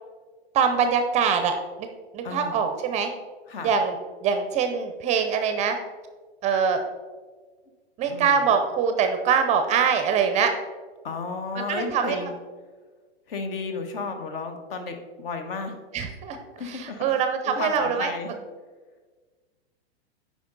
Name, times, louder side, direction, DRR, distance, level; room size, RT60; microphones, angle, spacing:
voice 1, 0.5-1.9 2.1-3.1 3.6-4.0 4.2-5.8 6.4-6.8 8.0-10.5 11.6-12.2 15.9-16.4 16.7-18.1, right 6 dB, 20° right, 7 dB, 0.5 m, -23 dB
voice 2, 2.2-2.7 3.5-3.8 8.0-8.5 11.0-12.3 13.3-15.8 16.6-17.2 17.4-18.4, left 4 dB, 60° left, 6 dB, 1.2 m, -33 dB
8.3 x 5.0 x 3.9 m, 1.4 s
hypercardioid pair, 130°, 32 cm